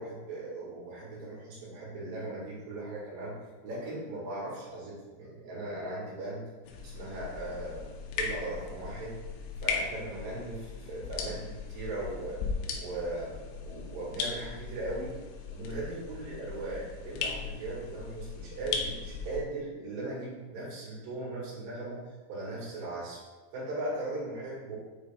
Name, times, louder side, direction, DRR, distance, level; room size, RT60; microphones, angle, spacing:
voice 1, 0.0-3.4 3.6-6.4 6.8-7.9 8.2-9.1 9.6-12.4 12.7-15.1 15.5-23.2 23.5-24.8, right 2 dB, 70° right, -7 dB, 4.0 m, -38 dB
sound 1, 6.6-19.4, left 5 dB, 85° left, 2.9 m, -38 dB
8.4 x 3.3 x 3.6 m, 1.3 s
omnidirectional pair, 5.1 m